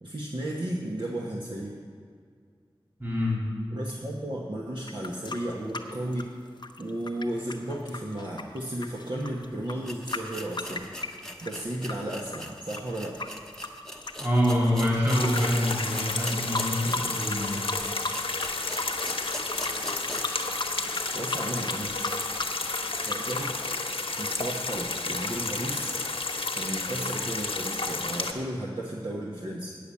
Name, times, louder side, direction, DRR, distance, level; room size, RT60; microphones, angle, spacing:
voice 1, 0.0-1.8 3.7-6.3 6.8-10.9 11.4-13.3 21.1-22.0 23.1-23.5 24.2-25.9 26.5-29.8, right 1 dB, 55° right, -4 dB, 1.2 m, -34 dB
voice 2, 3.0-3.4 14.2-17.6, equal, 25° right, -6 dB, 3.5 m, -25 dB
sound 1, 4.8-11.9 12.3-15.4 15.7-15.9 16.2-17.4 17.7-18.5 18.7-23.6, left 3 dB, 50° left, 0.8 m, -36 dB
mysound Regenboog Besal, 9.3-9.4 9.8-20.4 20.8-20.9 21.4-21.5, equal, 5° left, 1.0 m, -41 dB
sound 2, 15.1-28.3, left 3 dB, 75° left, 1.0 m, -31 dB
8.6 x 7.0 x 8.4 m, 2.1 s
wide cardioid pair, 65°, 10 cm